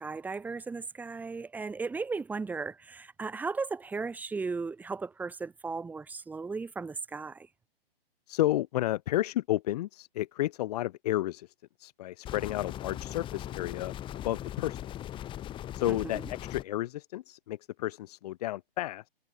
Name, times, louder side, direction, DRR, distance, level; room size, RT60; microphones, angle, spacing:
voice 1, 0.0-7.5 15.9-16.1, right 4 dB, 5° right, 1.1 m, -36 dB
voice 2, 8.3-14.8 15.7-19.1, left 15 dB, 40° left, 1.5 m, -32 dB
sound 1, 12.3-16.6, left 12 dB, 15° left, 1.5 m, -39 dB
hypercardioid pair, 135°, 30 cm